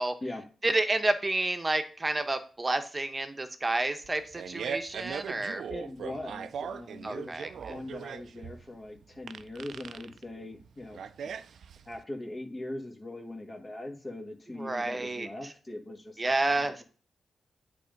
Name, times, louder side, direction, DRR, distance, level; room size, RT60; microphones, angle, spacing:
voice 1, 0.6-5.6 7.0-7.8 14.6-15.3 16.2-16.8, right 2 dB, 25° right, 8 dB, 1.0 m, -30 dB
Fart, 4.0-12.0, right 7 dB, 80° right, 0.4 m, -39 dB
voice 2, 5.7-11.0 11.8-16.8, left 1 dB, 30° left, 2 dB, 1.7 m, -41 dB
8.4 x 3.5 x 5.3 m, 0.40 s
cardioid pair, 70°, 0 cm